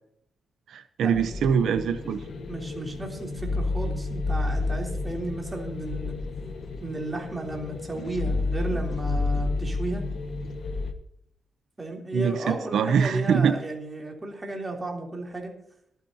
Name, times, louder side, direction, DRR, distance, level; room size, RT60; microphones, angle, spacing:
voice 1, 0.7-2.2 12.1-13.5, right 7 dB, 80° right, 10 dB, 0.7 m, -23 dB
sound 1, 1.1-10.9, left 3 dB, 55° left, 1.5 m, -30 dB
voice 2, 2.5-6.2 6.8-10.0 11.8-15.5, right 2 dB, 15° right, 0 dB, 3.4 m, -33 dB
25.0 x 9.4 x 2.8 m, 0.73 s
wide cardioid pair, 145°, 0 cm